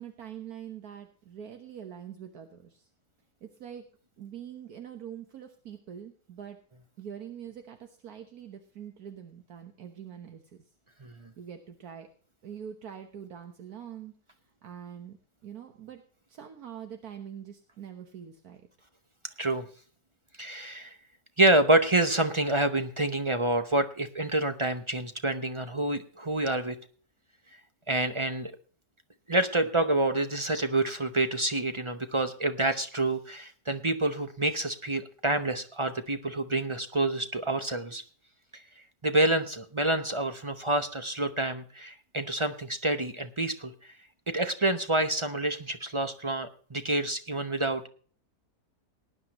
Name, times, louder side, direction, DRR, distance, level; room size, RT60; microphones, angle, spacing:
voice 1, 0.0-2.9 3.4-3.9 4.2-6.6 7.0-10.7 11.4-12.1 12.4-14.1 14.6-15.2 15.4-16.0 16.3-18.7, right 9 dB, 75° right, 6 dB, 1.6 m, -44 dB
voice 2, 20.4-20.9 21.4-26.8 27.9-28.5 29.3-38.0 38.5-38.6 39.0-43.7 44.3-47.9, right 2 dB, 25° right, 8 dB, 0.6 m, -27 dB
18.5 x 10.0 x 3.0 m, 0.43 s
omnidirectional pair, 1.6 m